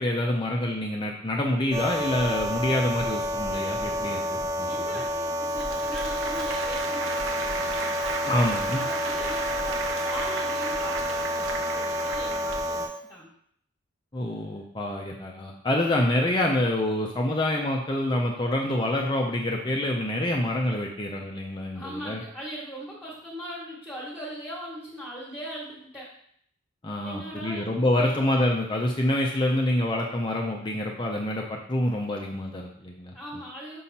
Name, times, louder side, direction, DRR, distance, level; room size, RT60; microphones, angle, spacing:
voice 1, 0.0-4.8 8.2-8.8 14.1-22.2 26.8-33.1, left 1 dB, 25° left, -1 dB, 0.6 m, -26 dB
sound 1, 1.7-12.9, equal, 20° right, 0.5 m, -29 dB
voice 2, 4.6-7.9 8.7-13.3 21.7-26.1 27.0-28.2 33.1-33.8, equal, 5° left, -6 dB, 1.6 m, -40 dB
Applause, 5.5-12.9, right 4 dB, 85° right, 0.8 m, -35 dB
5.7 x 5.5 x 4.2 m, 0.68 s
head